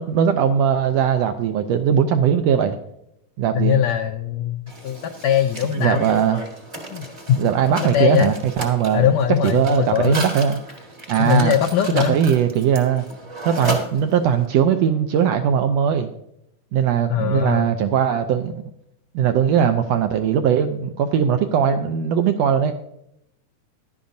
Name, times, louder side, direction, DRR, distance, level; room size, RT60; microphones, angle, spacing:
voice 1, 0.0-2.8 3.4-3.8 5.8-6.4 7.4-9.1 9.4-10.6 11.1-11.5 11.9-13.0 13.4-16.1 16.7-18.6 19.1-22.7, right 8 dB, 85° right, 8 dB, 1.4 m, -19 dB
voice 2, 3.5-6.0 6.9-7.4 7.9-8.3 8.9-10.2 11.2-12.2 17.1-17.7, left 9 dB, 80° left, 5 dB, 1.6 m, -21 dB
Mechanisms, 4.7-14.4, right 1 dB, 25° right, 0.7 m, -34 dB
15.5 x 11.5 x 2.7 m, 0.78 s
omnidirectional pair, 3.6 m